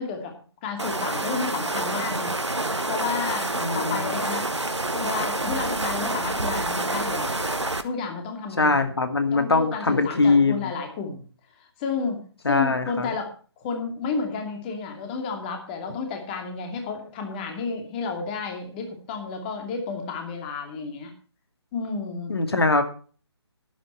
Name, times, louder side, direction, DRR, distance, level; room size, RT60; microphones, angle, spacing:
voice 1, 0.0-4.4 4.9-7.5 7.8-8.7 9.3-11.2 11.6-13.3 13.6-21.1 21.7-22.3, left 5 dB, 20° left, 4 dB, 2.5 m, -32 dB
sound 1, 0.8-7.8, right 2 dB, 85° right, 1.5 m, -27 dB
voice 2, 3.6-4.0 8.6-10.7 12.5-13.1 22.3-22.8, left 3 dB, 60° left, 8 dB, 2.3 m, -22 dB
12.0 x 11.0 x 4.5 m, 0.40 s
figure-of-eight pair, 145°, 14 cm